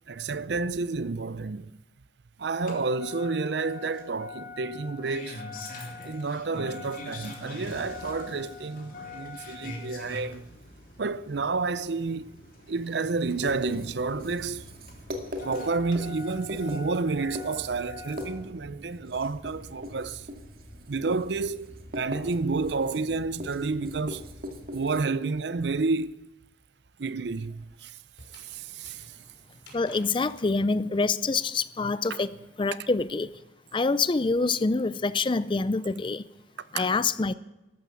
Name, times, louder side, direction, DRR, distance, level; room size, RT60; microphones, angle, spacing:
voice 1, 0.1-1.7 2.4-5.4 6.0-10.5 11.0-12.3 12.7-14.7 15.4-20.3 20.9-24.2 24.7-26.2 27.0-28.0 28.3-29.2 32.1-32.2 36.7-36.9, right 4 dB, 70° right, 0.6 m, -30 dB
Engine starting, 2.5-18.5 19.7-19.8, left 3 dB, 50° left, 3.3 m, -43 dB
Writing, 13.3-25.0, left 1 dB, 50° right, 2.1 m, -41 dB
sound 1, 20.6-24.3 24.6-30.5, left 2 dB, 75° left, 5.8 m, -57 dB
voice 2, 29.7-32.3 32.6-33.3 33.7-36.3 36.7-37.3, left 3 dB, 25° left, 0.4 m, -26 dB
13.5 x 12.5 x 7.1 m
head